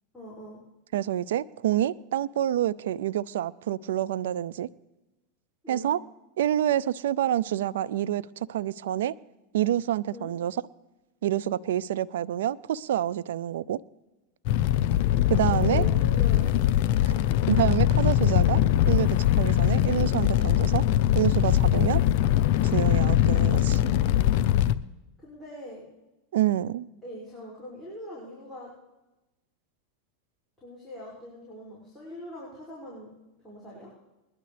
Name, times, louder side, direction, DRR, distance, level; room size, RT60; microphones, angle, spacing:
voice 1, 0.1-0.6 5.6-5.9 10.1-10.3 15.5-16.5 25.2-25.9 27.0-28.7 30.6-33.1 33.4-33.9, equal, ahead, -6 dB, 5.8 m, -42 dB
voice 2, 0.9-4.7 5.7-6.0 6.4-9.1 9.5-10.6 11.2-13.8 15.3-15.8 17.1-17.2 17.5-18.6 18.9-20.8 21.1-22.0 22.6-23.8 26.3-26.9, right 12 dB, 80° right, 18 dB, 0.4 m, -27 dB
Fire, 14.5-24.8, left 12 dB, 60° left, 0.6 m, -22 dB
21.0 x 12.0 x 3.3 m, 1.0 s
hypercardioid pair, 120°, 0 cm